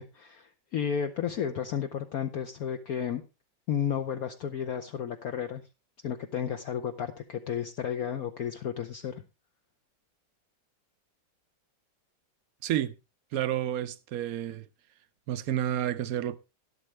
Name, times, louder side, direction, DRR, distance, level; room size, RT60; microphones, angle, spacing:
voice 1, 0.0-3.2 3.7-5.6 6.0-9.2, left 8 dB, 60° left, 1.1 m, -32 dB
voice 2, 12.6-12.9 13.3-14.7 15.3-16.4, right 11 dB, 65° right, 1.0 m, -30 dB
12.5 x 11.5 x 3.2 m
omnidirectional pair, 2.0 m